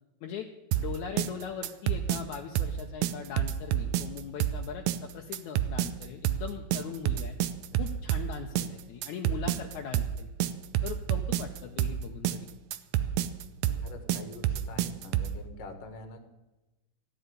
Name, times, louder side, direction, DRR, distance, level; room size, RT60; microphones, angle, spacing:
sound 1, 0.7-15.4, right 12 dB, 75° right, 1.8 m, -29 dB
voice 1, 0.8-7.4 7.8-10.3 10.8-12.5, left 8 dB, 75° left, 2 dB, 2.2 m, -40 dB
voice 2, 13.6-16.2, left 3 dB, 55° left, 6 dB, 2.4 m, -46 dB
15.0 x 8.2 x 9.5 m, 1.1 s
omnidirectional pair, 3.6 m